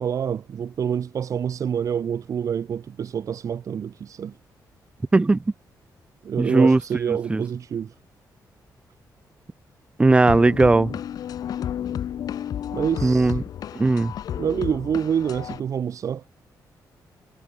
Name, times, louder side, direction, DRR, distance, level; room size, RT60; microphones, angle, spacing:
voice 1, 0.0-4.3 6.2-7.9 12.7-13.4 14.3-16.2, right 8 dB, 50° right, 1.8 m, -27 dB
voice 2, 6.4-6.8 7.1-7.4 10.0-11.0 13.0-13.4 13.7-14.1, right 3 dB, 15° right, 0.8 m, -18 dB
sound 1, 10.3-15.6, left 10 dB, 65° left, 1.0 m, -32 dB
wide cardioid pair, 155°, 7 cm